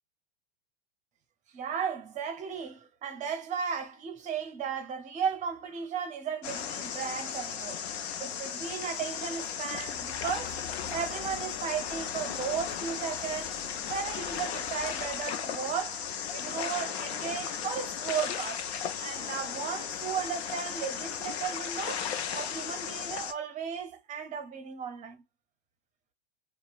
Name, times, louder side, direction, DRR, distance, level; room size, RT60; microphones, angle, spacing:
voice 1, 1.5-7.8 8.2-10.6 10.9-13.6 13.9-16.0 16.3-18.7 19.0-22.1 22.3-25.2, right 7 dB, 25° right, 0.6 m, -35 dB
sound 1, 6.4-23.3, left 8 dB, 80° left, 0.7 m, -36 dB
sound 2, 9.5-15.3, left 6 dB, 35° left, 0.6 m, -49 dB
2.8 x 2.3 x 2.4 m
hypercardioid pair, 130°, 32 cm